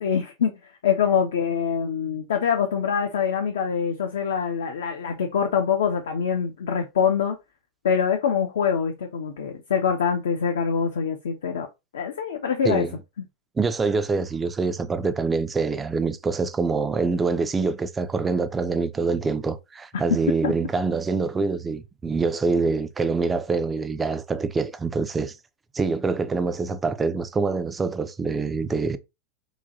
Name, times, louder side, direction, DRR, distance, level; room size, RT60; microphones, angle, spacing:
voice 1, 0.0-7.4 7.8-11.7 11.9-12.9 20.4-20.5, left 7 dB, 60° left, 0.4 m, -24 dB
voice 2, 13.6-25.4 25.7-29.0, right 4 dB, 15° right, 0.3 m, -25 dB
3.8 x 2.2 x 2.6 m
figure-of-eight pair, 90°, 0 cm